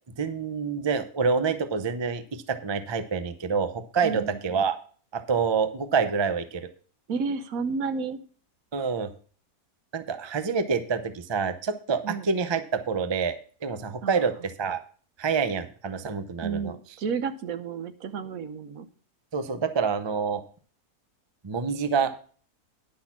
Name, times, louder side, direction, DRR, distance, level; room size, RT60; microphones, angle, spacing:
voice 1, 0.2-4.8 5.1-6.7 8.7-9.1 9.9-14.8 15.2-16.7 19.3-20.4 21.4-22.3, right 5 dB, 35° right, 10 dB, 0.4 m, -27 dB
voice 2, 4.0-4.4 7.1-8.2 12.0-12.3 14.0-14.2 16.4-18.9, right 5 dB, 70° right, 9 dB, 1.2 m, -31 dB
10.5 x 6.1 x 5.9 m, 0.42 s
omnidirectional pair, 1.6 m